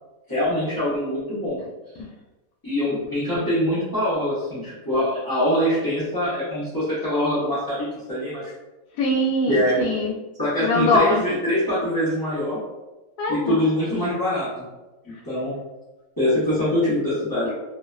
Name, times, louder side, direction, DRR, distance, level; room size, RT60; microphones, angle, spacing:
voice 1, 0.3-1.6 2.6-8.5 9.5-9.8 10.4-12.6 13.3-14.5 15.3-15.5 16.2-17.5, left 1 dB, 30° left, -13 dB, 0.4 m, -23 dB
voice 2, 9.0-10.1 10.6-11.2 13.2-13.6 17.4-17.5, left 2 dB, 85° left, 0 dB, 1.1 m, -22 dB
2.7 x 2.1 x 2.3 m, 1.1 s
omnidirectional pair, 1.6 m